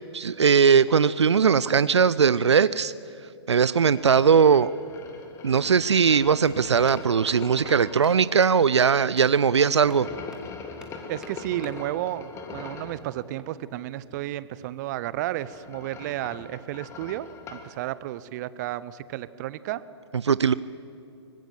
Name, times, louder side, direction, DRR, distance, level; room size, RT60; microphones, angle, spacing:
voice 1, 0.1-2.9 3.5-4.7 5.4-10.1 20.2-20.5, right 6 dB, 75° right, 17 dB, 0.6 m, -19 dB
sound 1, 3.6-8.2 9.8-13.0 15.1-17.7, left 5 dB, 20° left, 1.9 m, -42 dB
sound 2, 6.0-6.1 6.4-6.5 6.9-7.0 7.3-7.4 7.7-7.8 8.0-8.1 8.4-8.5 8.8-8.9 9.2-9.3 9.5-9.6 9.9-10.0 10.3-10.4 10.8-10.9 11.2-11.3 11.6-11.7 13.4-14.4, right 3 dB, 5° right, 2.2 m, -50 dB
voice 2, 11.1-19.8, right 14 dB, 40° right, 17 dB, 0.8 m, -32 dB
24.5 x 20.0 x 7.8 m, 2.7 s
figure-of-eight pair, 120°, 15 cm